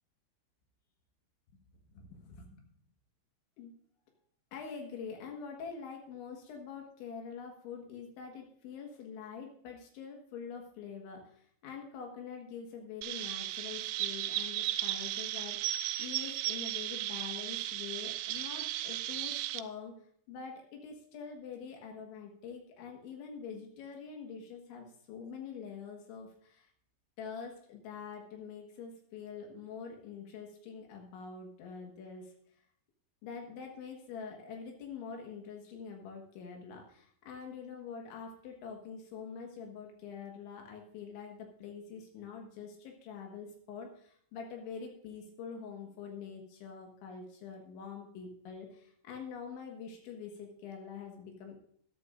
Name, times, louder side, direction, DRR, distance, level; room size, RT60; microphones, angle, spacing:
voice 1, 1.9-2.6 3.6-3.7 4.5-19.9 20.3-26.7 27.2-32.3 33.2-51.6, left 6 dB, 85° left, 1 dB, 3.9 m, -45 dB
Chirp tweet, 13.0-19.6, right 14 dB, 80° right, 2.7 m, -35 dB
23.0 x 9.5 x 2.5 m, 0.64 s
omnidirectional pair, 5.3 m